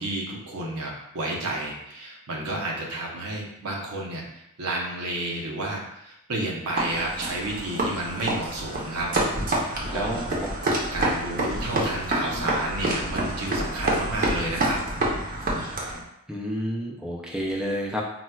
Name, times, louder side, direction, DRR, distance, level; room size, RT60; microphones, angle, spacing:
voice 1, 0.0-9.1 9.9-10.2 10.9-14.8, right 2 dB, 90° right, -2 dB, 0.8 m, -31 dB
sound 1, 6.8-16.0, right 1 dB, 40° right, 0.6 m, -27 dB
voice 2, 9.9-10.3 16.3-18.0, equal, 5° right, -2 dB, 0.3 m, -30 dB
4.0 x 2.2 x 2.2 m, 0.80 s
head